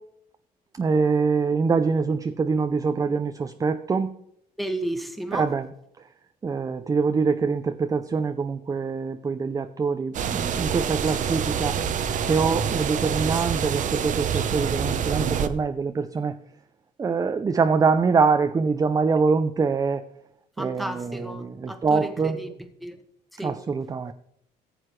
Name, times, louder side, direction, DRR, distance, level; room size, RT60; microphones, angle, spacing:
voice 1, 0.8-4.1 5.3-5.7 6.4-11.8 12.3-16.4 17.0-20.0 20.6-22.4 23.4-24.1, right 4 dB, 20° right, 0.4 m, -24 dB
voice 2, 4.6-5.5 20.6-22.5 22.8-23.0 23.3-23.5, right 1 dB, ahead, 1.3 m, -32 dB
sound 1, 10.1-15.5, right 7 dB, 50° right, 0.7 m, -26 dB
14.5 x 7.8 x 3.2 m
cardioid pair, 110°, 17 cm